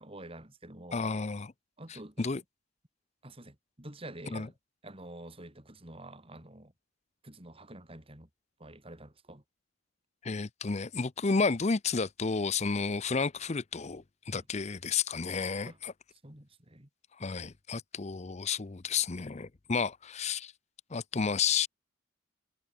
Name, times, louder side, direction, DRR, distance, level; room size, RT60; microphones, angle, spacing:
voice 1, 0.0-1.2 1.8-2.3 3.2-4.5 4.8-6.7 7.2-8.3 8.6-9.4 14.3-14.4 15.6-15.8 16.2-16.9, right 1 dB, 25° right, 2.9 m, -48 dB
voice 2, 0.9-1.5 1.9-2.4 4.3-4.5 10.2-15.9 17.2-20.5 20.9-21.7, left 5 dB, 35° left, 0.6 m, -31 dB
head